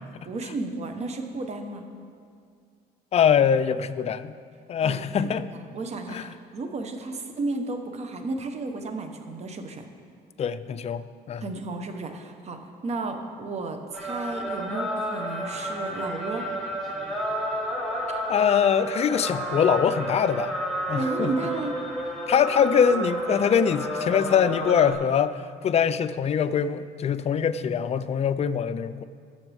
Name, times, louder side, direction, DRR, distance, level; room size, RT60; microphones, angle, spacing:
voice 1, 0.2-1.8 4.8-9.9 11.4-16.5 18.1-18.2 21.0-21.8 23.3-23.5, right 3 dB, 40° right, 5 dB, 1.2 m, -33 dB
voice 2, 3.1-4.3 4.7-5.5 6.1-6.3 10.4-11.4 18.3-20.6 20.9-21.3 22.3-25.3 25.6-29.0, left 7 dB, 40° left, 12 dB, 0.5 m, -23 dB
sound 1, 13.9-24.9, equal, ahead, 2.1 m, -31 dB
20.5 x 7.0 x 3.5 m, 2.2 s
cardioid pair, 110°, 17 cm